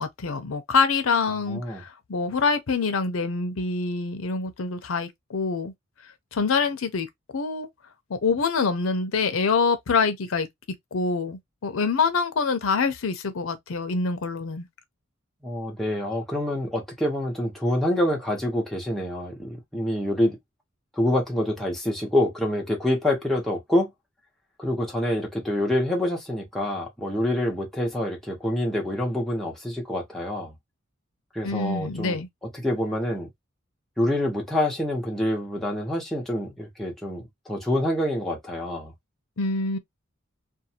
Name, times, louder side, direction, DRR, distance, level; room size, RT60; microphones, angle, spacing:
voice 1, 0.0-5.7 6.3-7.1 7.3-7.7 8.1-10.5 10.9-14.7 31.4-32.3 39.4-39.8, left 4 dB, 80° left, 0.6 m, -25 dB
voice 2, 1.5-1.8 15.4-20.4 21.0-23.9 24.6-30.5 31.3-32.2 32.6-33.3 34.0-38.9, left 1 dB, ahead, 0.9 m, -26 dB
2.6 x 2.3 x 2.8 m
head